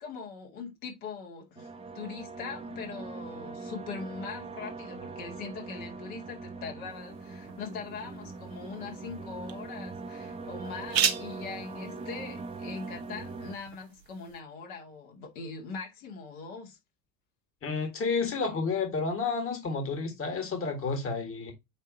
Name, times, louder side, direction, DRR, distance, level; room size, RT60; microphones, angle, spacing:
voice 1, 0.0-16.8, left 5 dB, 60° left, 2.4 m, -41 dB
sound 1, 1.6-13.6, right 3 dB, 10° right, 1.0 m, -41 dB
sound 2, 6.9-14.4, right 8 dB, 80° right, 1.1 m, -37 dB
voice 2, 17.6-21.5, left 4 dB, 25° left, 1.9 m, -30 dB
9.0 x 3.2 x 4.1 m
figure-of-eight pair, 75°, 49 cm